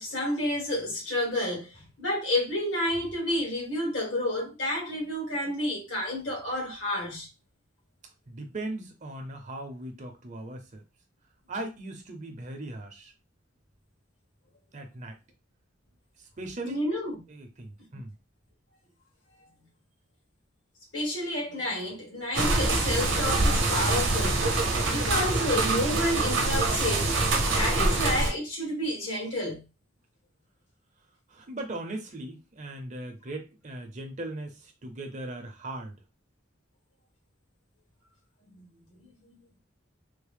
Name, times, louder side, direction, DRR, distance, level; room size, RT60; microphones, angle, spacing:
voice 1, 0.0-7.3 16.6-17.2 20.9-24.5 24.9-27.1 27.4-29.6 38.6-38.7, left 1 dB, 75° left, 1.8 m, -30 dB
voice 2, 8.3-10.8 11.5-13.1 14.7-15.2 16.2-16.8 17.3-18.1 31.3-36.0, right 2 dB, 40° right, 0.7 m, -39 dB
sound 1, 22.3-28.3, right 2 dB, 70° right, 0.8 m, -25 dB
3.5 x 2.1 x 3.4 m
head